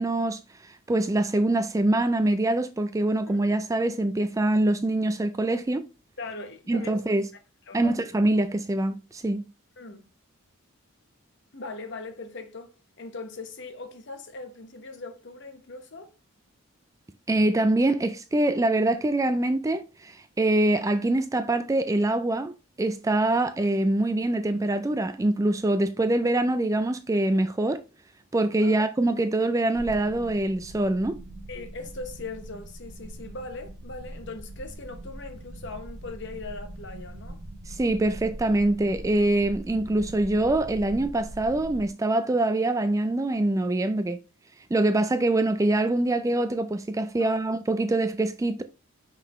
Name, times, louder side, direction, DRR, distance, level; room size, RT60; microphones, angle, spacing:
voice 1, 0.0-5.8 6.7-7.3 7.7-9.5 17.3-22.5 22.8-27.8 28.3-31.2 37.7-44.2 44.7-48.6, right 2 dB, 15° right, 0.3 m, -24 dB
voice 2, 6.2-7.0 7.7-8.0 9.8-10.1 11.5-16.1 28.6-28.7 31.5-37.4 47.2-47.4, left 3 dB, 50° left, 1.0 m, -40 dB
sound 1, 29.8-41.9, right 1 dB, 50° right, 0.9 m, -42 dB
5.7 x 5.5 x 3.1 m
head